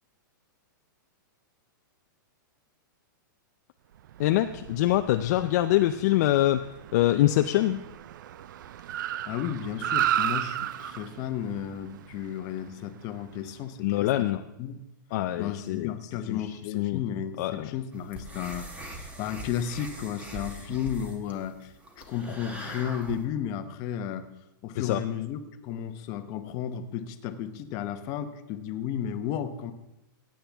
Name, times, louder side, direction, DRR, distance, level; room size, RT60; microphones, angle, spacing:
Car, 4.0-13.6, right 11 dB, 65° right, 0.4 m, -34 dB
voice 1, 4.2-6.6 6.9-7.8 13.8-14.4 15.1-15.9 16.3-17.0 17.4-17.7 24.8-25.0, left 14 dB, 50° left, 7 dB, 0.5 m, -24 dB
voice 2, 9.2-14.8 15.4-24.3 24.6-29.7, left 9 dB, 35° left, 9 dB, 0.9 m, -33 dB
sound 1, 17.9-23.2, right 1 dB, 10° right, 1.2 m, -42 dB
15.5 x 8.7 x 3.5 m, 0.92 s
hypercardioid pair, 150°, 11 cm